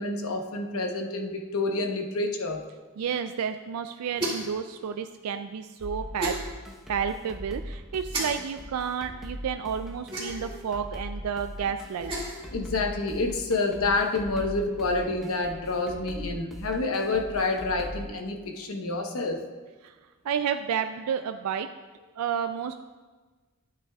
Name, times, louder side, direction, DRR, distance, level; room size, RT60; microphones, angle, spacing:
voice 1, 0.0-2.6 12.5-19.4, left 3 dB, 75° left, 3 dB, 1.0 m, -28 dB
voice 2, 3.0-6.4 6.9-12.1 19.8-20.0 20.2-21.7 22.2-22.7, right 7 dB, 90° right, 8 dB, 0.3 m, -31 dB
sound 1, 4.1-4.6 6.2-6.4 8.1-8.2 10.1-10.5 11.9-12.4, right 1 dB, 25° right, 2.0 m, -31 dB
sound 2, 5.8-18.1, equal, ahead, 0.9 m, -40 dB
12.0 x 9.1 x 2.3 m, 1.3 s
head